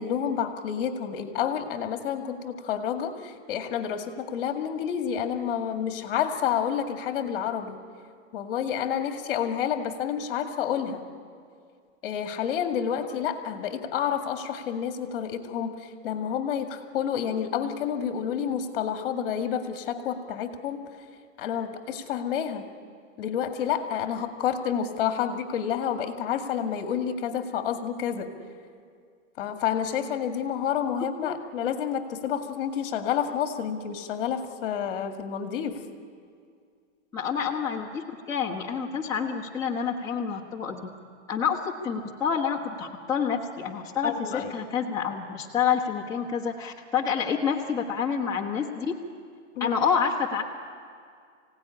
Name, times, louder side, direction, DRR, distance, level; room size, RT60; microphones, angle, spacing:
voice 1, 0.0-7.8 8.3-11.0 12.0-20.8 21.4-22.7 23.2-28.3 29.4-35.8 44.0-44.5 49.6-49.8, left 8 dB, 45° left, 7 dB, 2.1 m, -29 dB
voice 2, 37.1-40.8 41.3-49.0 49.6-50.4, left 6 dB, 10° left, -4 dB, 1.4 m, -28 dB
25.0 x 17.0 x 10.0 m, 2.2 s
supercardioid pair, 160°, 38 cm